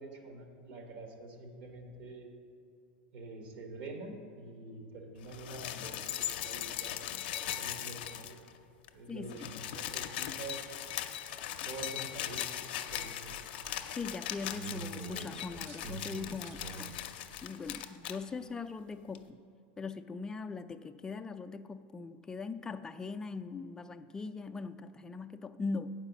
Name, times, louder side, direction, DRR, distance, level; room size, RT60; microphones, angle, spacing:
voice 1, 0.0-2.3 3.1-8.5 8.9-10.6 11.6-12.6 12.9-13.3, right 2 dB, 65° right, 3 dB, 1.5 m, -46 dB
sound 1, 5.2-8.6 8.8-8.9 9.2-18.2 19.1-19.2, left 11 dB, 70° left, 0.5 m, -39 dB
voice 2, 9.1-9.5 13.9-16.9 17.4-19.4 19.8-25.9, left 4 dB, 10° left, 8 dB, 0.3 m, -40 dB
sound 2, 12.9-17.0 17.3-17.8, right 4 dB, 35° right, 0.7 m, -46 dB
7.9 x 4.8 x 7.2 m, 2.6 s
supercardioid pair, 125°, 5 cm